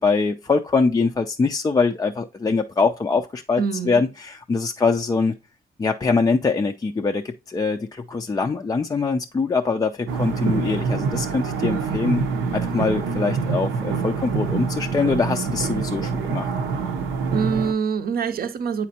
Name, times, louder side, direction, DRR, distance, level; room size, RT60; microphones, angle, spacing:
voice 1, 0.0-5.4 5.8-12.3 12.5-16.5, left 4 dB, 20° left, 0.3 m, -23 dB
voice 2, 3.6-4.0 17.3-18.9, right 6 dB, 50° right, 0.6 m, -25 dB
sound 1, 10.1-17.7, right 5 dB, 85° right, 0.8 m, -25 dB
8.2 x 4.2 x 2.8 m
cardioid pair, 90°, 20 cm